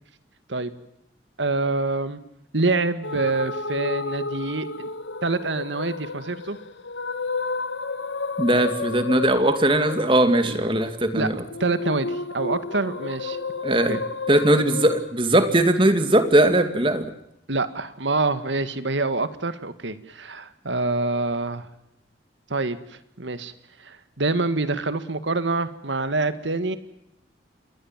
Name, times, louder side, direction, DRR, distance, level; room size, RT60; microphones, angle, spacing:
voice 1, 1.4-2.2 2.5-4.9 5.2-6.6 10.4-10.6 11.2-11.3 11.6-13.4 13.9-14.0 17.5-21.7 22.5-23.5 23.8-26.8, right 3 dB, 80° right, 12 dB, 1.9 m, -26 dB
sound 1, 3.0-15.1, left 4 dB, 80° left, 1.4 m, -32 dB
voice 2, 8.4-11.3 13.6-14.0 14.3-17.0, right 1 dB, 25° right, 9 dB, 2.3 m, -19 dB
27.0 x 20.5 x 7.5 m, 0.80 s
head